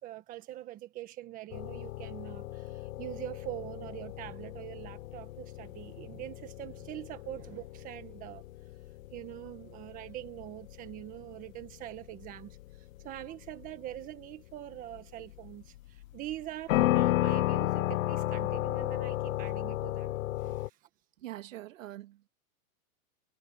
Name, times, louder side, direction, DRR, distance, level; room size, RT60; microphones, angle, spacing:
voice 1, 0.0-8.4 9.1-12.6 13.0-20.1 20.4-20.8, right 14 dB, 20° right, 1.6 m, -43 dB
sound 1, 1.5-20.7, left 16 dB, 65° left, 0.6 m, -34 dB
voice 2, 21.2-22.3, right 14 dB, 60° right, 2.7 m, -43 dB
supercardioid pair, 175°, 43 cm